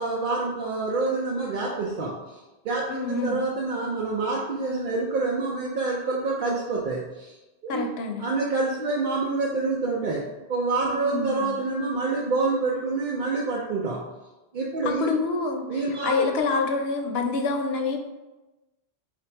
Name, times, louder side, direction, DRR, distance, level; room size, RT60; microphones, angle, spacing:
voice 1, 0.0-2.2 2.6-7.4 7.6-7.9 8.2-14.0 14.5-15.2 15.7-16.3, right 3 dB, 55° right, -3 dB, 0.6 m, -27 dB
voice 2, 2.9-3.4 7.7-8.2 11.0-11.5 14.8-18.0, left 4 dB, 70° left, 4 dB, 0.8 m, -27 dB
3.3 x 2.9 x 4.3 m, 1.1 s
omnidirectional pair, 1.1 m